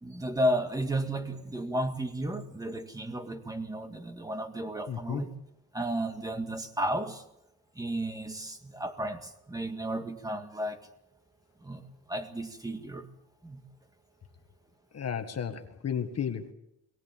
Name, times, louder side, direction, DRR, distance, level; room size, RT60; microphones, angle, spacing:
voice 1, 0.0-5.3 5.7-7.2 7.8-10.9 11.6-13.1 13.4-13.6, right 1 dB, 10° right, 7 dB, 1.8 m, -33 dB
voice 2, 4.9-5.2 14.9-16.5, left 8 dB, 45° left, 6 dB, 1.7 m, -33 dB
22.5 x 18.5 x 7.4 m, 0.81 s
wide cardioid pair, 160°, 34 cm